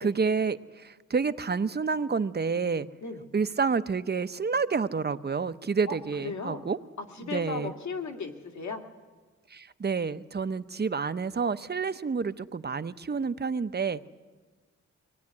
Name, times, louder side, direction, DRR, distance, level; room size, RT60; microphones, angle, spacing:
voice 1, 0.0-0.6 1.1-2.9 3.3-6.8 7.2-7.7 9.5-14.1, right 5 dB, 35° right, 12 dB, 0.8 m, -29 dB
voice 2, 5.9-6.6 7.1-8.8, left 4 dB, 70° left, 4 dB, 2.3 m, -36 dB
24.0 x 18.5 x 9.7 m, 1.4 s
wide cardioid pair, 105°, 29 cm